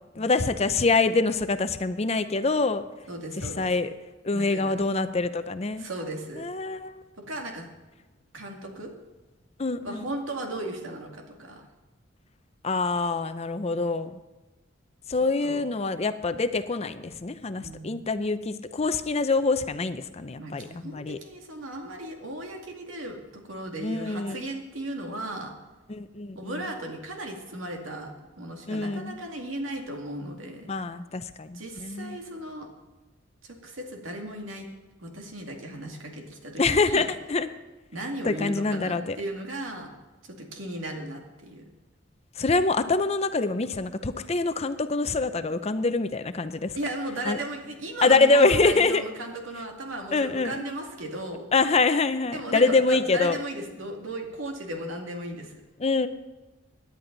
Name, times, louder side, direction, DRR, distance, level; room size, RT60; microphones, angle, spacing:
voice 1, 0.2-2.8 3.4-3.9 4.2-5.9 6.4-7.0 9.6-10.1 12.6-14.2 15.1-21.2 23.8-24.4 25.9-26.6 28.7-29.2 30.7-32.2 36.6-37.5 38.2-39.2 42.4-46.8 47.3-47.4 48.0-49.0 50.1-50.6 51.5-53.4 55.8-56.1, left 3 dB, 30° left, 11 dB, 0.6 m, -25 dB
voice 2, 3.1-3.7 4.3-4.7 5.8-6.5 7.2-7.7 8.3-8.9 9.8-11.7 15.4-15.6 17.6-18.0 20.4-25.5 26.4-30.7 31.5-32.7 33.4-34.7 35.0-37.1 37.9-39.9 40.2-41.6 46.7-51.5 52.3-55.6, right 1 dB, 80° right, 2 dB, 2.3 m, -36 dB
18.0 x 10.5 x 4.0 m, 1.2 s
head